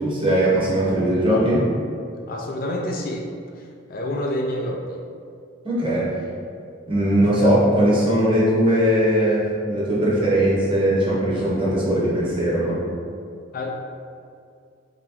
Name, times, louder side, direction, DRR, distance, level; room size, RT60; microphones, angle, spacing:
voice 1, 0.0-1.6 5.6-6.0 6.9-12.8, right 1 dB, 25° right, -7 dB, 0.9 m, -19 dB
voice 2, 2.3-3.3 3.6-5.0 5.8-6.0 7.2-7.6 13.5-13.7, left 1 dB, 45° left, 0 dB, 0.4 m, -29 dB
3.3 x 2.9 x 3.6 m, 2.3 s
head